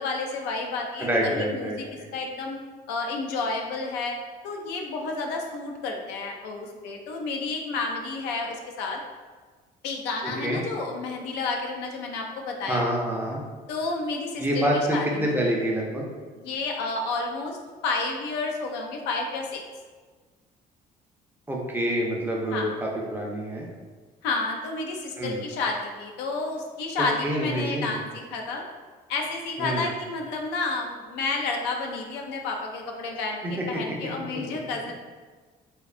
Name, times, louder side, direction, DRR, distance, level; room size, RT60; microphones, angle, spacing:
voice 1, 0.0-1.7 2.1-2.6 2.9-4.2 4.4-9.0 9.8-12.9 13.7-15.3 16.4-17.6 17.8-19.6 22.5-22.7 24.2-28.6 29.1-34.9, left 3 dB, 90° left, 2 dB, 0.4 m, -30 dB
voice 2, 1.0-2.1 10.2-10.6 12.6-13.4 14.4-16.1 21.5-23.7 25.2-25.4 27.0-28.0 29.6-29.9 33.4-33.5, equal, 10° right, -2 dB, 0.4 m, -27 dB
2.6 x 2.2 x 2.4 m, 1.4 s
cardioid pair, 110°, 17 cm